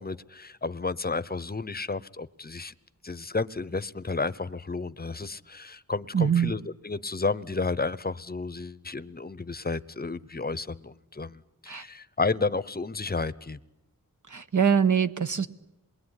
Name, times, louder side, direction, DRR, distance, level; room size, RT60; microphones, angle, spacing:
voice 1, 0.0-2.7 3.0-13.6, left 4 dB, 25° left, 0.9 m, -32 dB
voice 2, 6.1-6.5 11.7-11.8 14.3-15.5, right 7 dB, 55° right, 1.3 m, -23 dB
27.0 x 21.5 x 9.9 m
wide cardioid pair, 60°, 35 cm